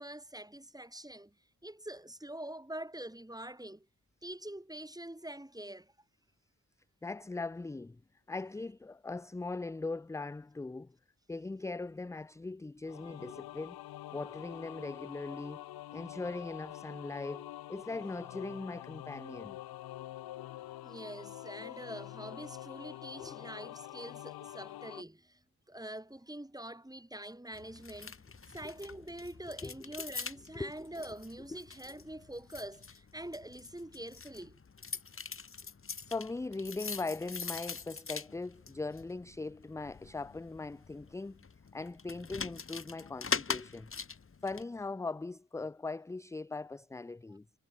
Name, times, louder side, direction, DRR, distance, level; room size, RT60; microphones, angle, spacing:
voice 1, 0.0-1.3 1.6-3.9 4.2-5.9 20.8-25.4 25.7-28.2 28.5-34.6 47.3-47.4, right 1 dB, 10° right, 3.9 m, -45 dB
voice 2, 7.0-8.0 8.3-11.0 11.3-13.8 14.1-15.6 15.9-19.6 23.2-23.3 29.6-29.7 30.5-30.7 36.1-41.5 41.7-43.9 44.4-47.5, left 3 dB, 10° left, 0.3 m, -40 dB
sound 1, 12.8-25.0, left 14 dB, 65° left, 0.5 m, -46 dB
sound 2, 27.5-44.6, left 5 dB, 35° left, 1.2 m, -43 dB
supercardioid pair, 45°, 39 cm